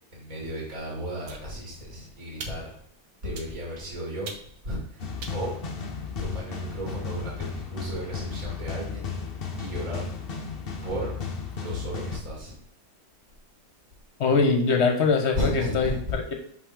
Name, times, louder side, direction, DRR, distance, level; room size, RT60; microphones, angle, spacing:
voice 1, 0.1-2.7 3.2-4.3 4.6-5.5 6.2-9.1 9.6-10.1 10.8-11.1 11.6-12.6 15.3-16.2, equal, 45° right, -4 dB, 2.6 m, -34 dB
sound 1, 1.3-1.9 2.4-2.9 3.3-3.8 4.2-4.7 5.2-6.3, right 4 dB, 60° right, 1.3 m, -43 dB
sound 2, 5.0-12.2, left 5 dB, 80° left, 0.5 m, -34 dB
voice 2, 14.2-16.3, left 4 dB, 45° left, 3 dB, 1.0 m, -23 dB
5.7 x 5.7 x 3.7 m, 0.66 s
omnidirectional pair, 2.2 m